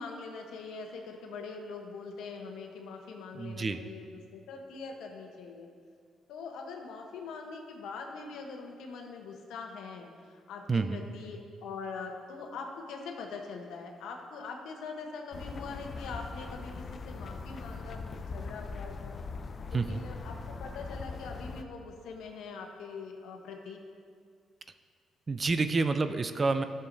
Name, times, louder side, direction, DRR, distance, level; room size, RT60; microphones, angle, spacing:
voice 1, 0.0-5.7 6.3-16.7 17.1-19.1 19.7-20.3 20.6-23.8, left 4 dB, 85° left, 2 dB, 1.0 m, -43 dB
voice 2, 3.3-3.8 10.7-11.0 19.7-20.0 25.3-26.6, right 3 dB, 35° right, 10 dB, 0.4 m, -28 dB
sound 1, 15.3-21.6, left 4 dB, 40° left, 0.5 m, -41 dB
13.0 x 6.6 x 2.7 m, 2.1 s
cardioid pair, 90°, 0 cm